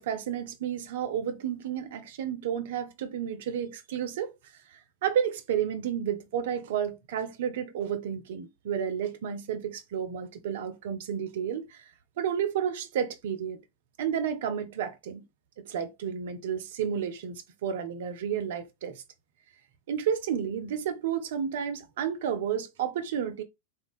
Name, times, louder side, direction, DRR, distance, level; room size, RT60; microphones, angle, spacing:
voice 1, 0.0-4.3 4.7-11.9 12.2-13.6 14.0-15.2 15.6-19.0 19.9-23.4, right 8 dB, 55° right, 0.4 m, -31 dB
3.7 x 2.1 x 2.5 m
figure-of-eight pair, 90°, 0 cm